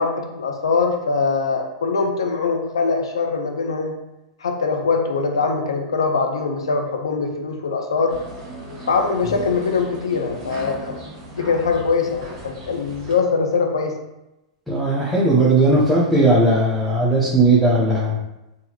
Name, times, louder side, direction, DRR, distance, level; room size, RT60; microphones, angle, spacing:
voice 1, 0.0-4.0 4.4-8.2 8.9-11.0 11.3-14.0, left 4 dB, 75° left, 3 dB, 0.6 m, -22 dB
sound 1, 8.1-13.1, right 2 dB, 35° right, 1.4 m, -37 dB
voice 2, 14.7-18.2, right 2 dB, ahead, -7 dB, 0.8 m, -17 dB
3.9 x 2.8 x 2.9 m, 0.94 s
figure-of-eight pair, 95°, 3 cm